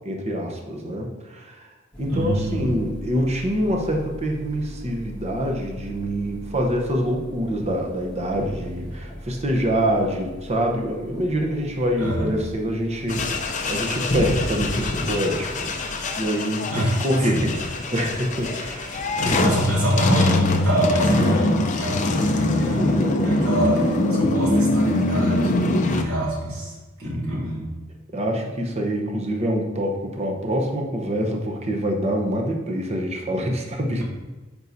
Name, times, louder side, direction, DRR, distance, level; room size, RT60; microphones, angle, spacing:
voice 1, 0.0-1.7 2.0-15.8 16.2-19.0 19.2-19.6 22.8-23.4 27.0-27.6 28.1-34.0, equal, 30° right, 1 dB, 0.9 m, -26 dB
sound 1, 1.9-16.3, equal, 5° left, 1.6 m, -39 dB
voice 2, 2.1-2.7 12.0-12.3 16.7-17.0 17.3-17.5 18.9-27.6, equal, 75° right, -5 dB, 2.4 m, -25 dB
sound 2, 13.1-26.0, left 2 dB, 35° left, 0.6 m, -23 dB
9.3 x 5.4 x 2.7 m, 1.2 s
head